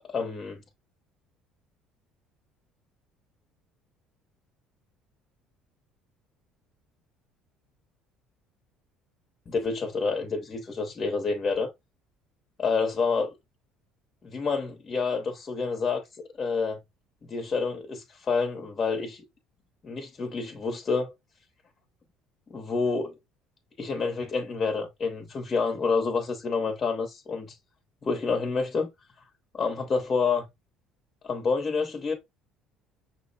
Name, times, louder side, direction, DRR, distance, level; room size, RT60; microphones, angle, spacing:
voice 1, 0.1-0.6 9.5-11.7 12.6-13.4 14.2-16.0 16.4-16.8 17.2-19.2 19.8-21.1 22.5-23.2 23.8-27.6 28.0-28.9 29.5-30.4 31.2-32.1, left 4 dB, 30° left, 0.9 m, -28 dB
5.9 x 2.0 x 4.1 m
cardioid pair, 140°, 0 cm